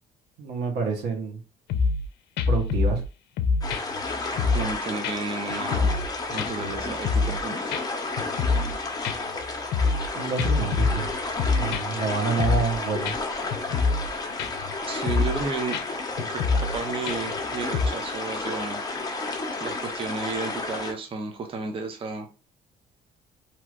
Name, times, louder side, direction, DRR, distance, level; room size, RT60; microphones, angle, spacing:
voice 1, 0.4-1.4 2.5-3.0 10.1-11.1 11.6-13.1, right 5 dB, 80° right, 2 dB, 1.1 m, -28 dB
sound 1, 1.7-2.1 2.4-3.1 3.4-4.7 5.0-5.1 5.5-6.1 6.4-7.4 7.7-7.8 8.2-8.7 9.0-10.1 10.4-12.0 12.4-12.8 13.0-13.2 13.5-14.1 14.4-14.7 15.0-15.4 15.7-15.8 16.2-16.8 17.1-17.4 17.7-17.9, left 4 dB, 80° left, 0.4 m, -25 dB
sound 2, 3.6-20.9, left 3 dB, 20° left, 0.8 m, -32 dB
voice 2, 4.5-5.9 6.3-7.7 14.9-15.8 16.3-18.8 19.6-22.3, right 4 dB, 30° right, 4 dB, 0.6 m, -32 dB
3.2 x 2.8 x 2.4 m, 0.33 s
cardioid pair, 110°, 17 cm